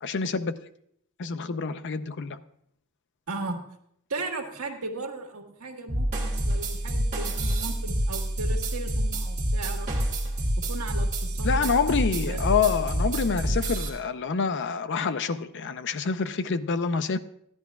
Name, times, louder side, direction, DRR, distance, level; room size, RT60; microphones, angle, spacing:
voice 1, 0.0-0.5 1.2-2.4 11.4-17.2, left 5 dB, 55° left, 0.5 m, -27 dB
voice 2, 3.3-3.6 4.1-9.9 10.7-11.7 12.3-12.4, right 3 dB, 75° right, 1.6 m, -36 dB
sound 1, 5.9-13.9, right 1 dB, 35° right, 2.0 m, -27 dB
14.5 x 10.5 x 2.3 m
head